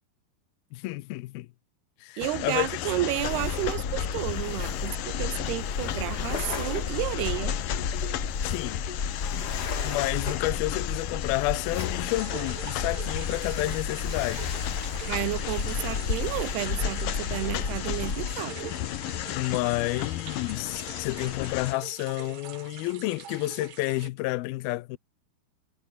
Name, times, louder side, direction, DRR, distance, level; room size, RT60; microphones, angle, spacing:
voice 1, 0.7-1.5 2.0-2.7 8.4-8.8 9.8-14.6 19.3-25.0, left 20 dB, 85° left, 2.2 m, -30 dB
sound 1, 2.2-21.7, left 13 dB, 65° left, 2.2 m, -34 dB
voice 2, 2.2-7.6 15.0-18.7, right 17 dB, 75° right, 2.6 m, -31 dB
sound 2, 3.2-18.3, left 5 dB, 35° left, 1.7 m, -33 dB
sound 3, 12.1-24.1, right 10 dB, 60° right, 1.9 m, -44 dB
omnidirectional pair, 5.3 m